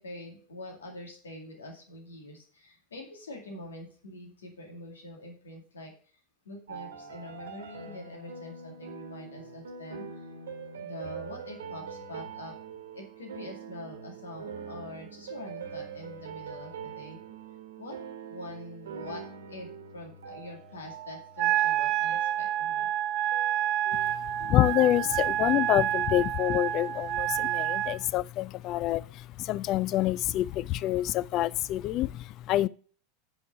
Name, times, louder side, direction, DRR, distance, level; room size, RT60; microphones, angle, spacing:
voice 1, 0.0-5.9 6.4-10.3 10.8-12.5 12.9-17.2 17.8-18.0 18.3-19.2 19.5-19.7 19.9-22.9, left 1 dB, 90° left, 2.2 m, -44 dB
sound 1, 6.7-25.9, right 6 dB, 85° right, 1.1 m, -44 dB
Wind instrument woodwind instrument, 21.4-28.0, right 12 dB, 50° right, 0.8 m, -28 dB
voice 2, 24.1-32.7, left 14 dB, 50° left, 0.3 m, -27 dB
6.6 x 5.3 x 6.7 m
hypercardioid pair, 90°, 0 cm